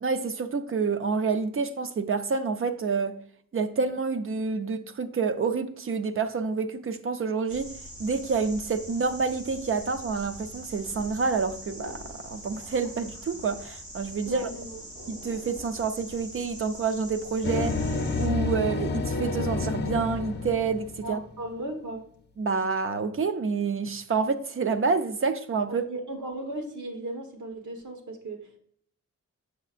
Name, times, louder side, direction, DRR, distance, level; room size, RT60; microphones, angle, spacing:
voice 1, 0.0-3.2 3.5-7.7 8.0-14.4 15.1-17.8 18.2-21.2 22.4-25.8, right 5 dB, 45° right, 0.5 m, -28 dB
sound 1, 7.5-18.3, equal, 70° right, 1.9 m, -43 dB
voice 2, 14.3-14.8 21.0-22.0 25.7-28.6, right 1 dB, 90° right, 1.2 m, -36 dB
sound 2, 17.4-21.4, left 3 dB, 35° left, 0.6 m, -29 dB
6.6 x 6.4 x 2.4 m
wide cardioid pair, 105°, 29 cm